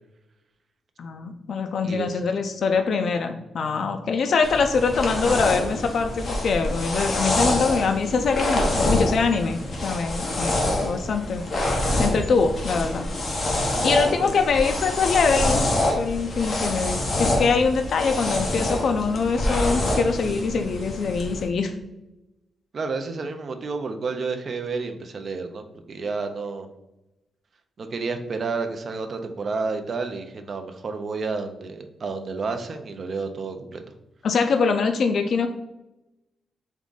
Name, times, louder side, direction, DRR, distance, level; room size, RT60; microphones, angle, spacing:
voice 1, 1.0-11.4 12.0-13.1 13.8-15.7 16.0-21.7 34.2-35.5, left 5 dB, 55° left, 5 dB, 0.4 m, -23 dB
voice 2, 1.8-2.2 13.9-14.7 22.7-26.7 27.8-33.8, right 4 dB, 40° right, 6 dB, 0.5 m, -30 dB
sound 1, 4.4-21.4, left 1 dB, 35° left, 0.9 m, -26 dB
3.6 x 3.6 x 3.8 m, 0.95 s
wide cardioid pair, 165°, 0 cm